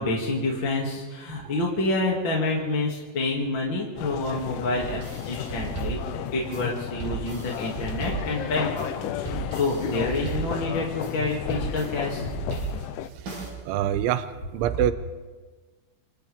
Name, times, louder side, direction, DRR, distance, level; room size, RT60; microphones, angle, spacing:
voice 1, 0.0-5.0 5.3-12.3, left 2 dB, 35° left, -3 dB, 2.5 m, -28 dB
sound 1, 4.0-13.1, left 12 dB, 85° left, 3.2 m, -33 dB
sound 2, 4.8-13.5, right 4 dB, 50° right, 8.6 m, -35 dB
voice 2, 13.7-14.9, right 11 dB, 85° right, 11 dB, 3.2 m, -25 dB
27.5 x 27.0 x 3.7 m, 1.4 s
omnidirectional pair, 5.3 m